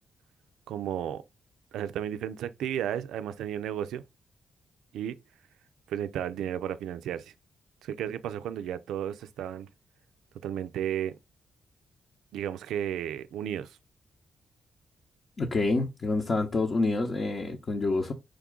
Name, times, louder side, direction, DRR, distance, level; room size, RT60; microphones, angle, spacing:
voice 1, 0.7-1.2 1.7-4.0 4.9-5.2 5.9-7.3 7.8-9.7 10.4-11.2 12.3-13.8, right 10 dB, 85° right, 0.3 m, -33 dB
voice 2, 15.4-18.1, left 3 dB, 50° left, 0.8 m, -27 dB
4.9 x 2.3 x 3.6 m
supercardioid pair, 55°, 0 cm